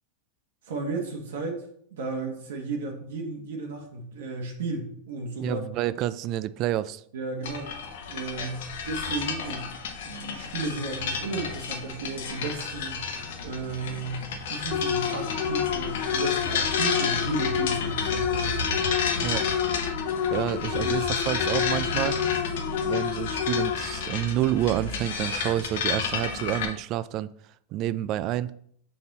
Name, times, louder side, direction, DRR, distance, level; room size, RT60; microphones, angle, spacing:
voice 1, 0.6-1.6 1.9-5.6 7.1-7.7 8.1-9.7 10.0-13.1 13.4-18.5 20.8-20.9, right 3 dB, 85° right, 1 dB, 1.2 m, -34 dB
voice 2, 5.4-7.0 19.2-19.5 20.3-22.2 22.8-27.3 27.7-28.5, right 13 dB, 45° right, 16 dB, 0.3 m, -28 dB
sound 1, 7.4-26.6, left 5 dB, 75° left, 0.9 m, -31 dB
sound 2, 14.7-24.1, left 9 dB, 60° left, 0.6 m, -29 dB
5.6 x 4.2 x 4.0 m, 0.64 s
supercardioid pair, 130°, 0 cm